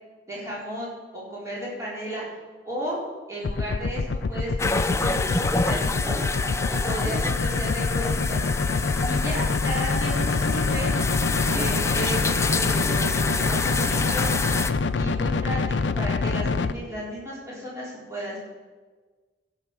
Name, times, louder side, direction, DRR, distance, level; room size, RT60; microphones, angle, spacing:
voice 1, 0.3-2.3 2.7-3.0 3.3-6.2 6.7-8.5 9.0-10.9 11.5-14.3 14.9-18.4, right 1 dB, 15° right, -7 dB, 3.9 m, -34 dB
sound 1, 3.4-16.7, left 3 dB, 85° left, 0.5 m, -26 dB
sound 2, 4.6-14.7, left 3 dB, 15° left, 0.4 m, -28 dB
15.5 x 6.7 x 6.1 m, 1.4 s
head